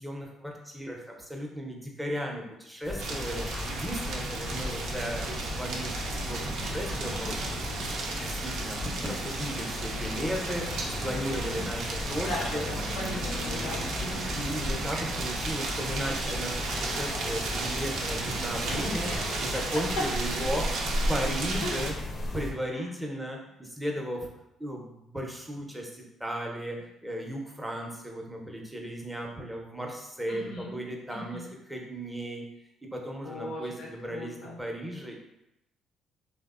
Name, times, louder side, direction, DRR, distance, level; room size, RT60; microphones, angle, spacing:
voice 1, 1.3-2.4 2.8-3.4 3.8-5.9 6.3-6.4 6.7-7.3 8.4-8.8 9.0-9.1 9.4-10.6 11.0-11.8 12.1-12.7 14.4-16.5 16.8-19.1 19.4-20.6 21.1-21.9 22.3-23.4 23.8-24.2 24.6-24.8 25.1-25.8 26.2-26.7 27.0-29.9 30.2-31.4 31.7-32.4 33.1-34.3 34.6-35.2, equal, 10° right, 0 dB, 0.6 m, -35 dB
sound 1, 2.8-22.5, left 2 dB, 50° left, 0.6 m, -36 dB
sound 2, 3.0-21.9, right 3 dB, 75° right, 0.4 m, -34 dB
voice 2, 11.0-11.7 12.3-14.3 19.1-19.3 21.6-21.8 30.3-30.7 31.1-31.5 33.2-34.6, left 1 dB, 85° left, -3 dB, 0.7 m, -38 dB
3.2 x 2.0 x 2.3 m, 0.87 s
supercardioid pair, 75°, 0 cm